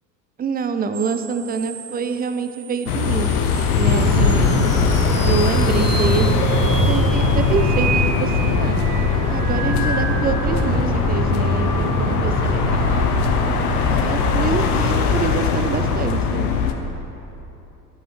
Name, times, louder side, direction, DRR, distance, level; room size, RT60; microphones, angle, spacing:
voice 1, 0.4-3.3 3.7-4.7 5.3-6.4 6.8-8.8 9.3-13.1 13.9-16.5, right 5 dB, 20° right, 9 dB, 0.6 m, -26 dB
sound 1, 0.9-10.5 11.0-12.3 14.1-15.3, right 3 dB, 80° right, 1.2 m, -33 dB
sound 2, 2.9-16.7, left 6 dB, 65° left, 1.0 m, -21 dB
sound 3, 3.9-16.0, right 2 dB, 40° right, 1.7 m, -24 dB
13.0 x 10.5 x 3.2 m, 2.9 s
hypercardioid pair, 70°, 48 cm